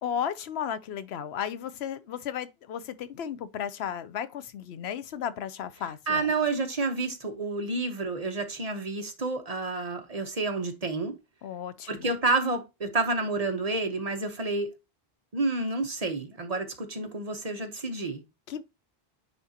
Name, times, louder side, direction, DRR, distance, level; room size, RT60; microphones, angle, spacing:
voice 1, 0.0-6.3 11.4-12.1 18.5-18.6, left 9 dB, 90° left, 0.9 m, -34 dB
voice 2, 6.1-11.2 11.9-14.7 15.3-18.2, right 3 dB, 40° right, 1.0 m, -29 dB
9.5 x 3.7 x 2.8 m
omnidirectional pair, 1.0 m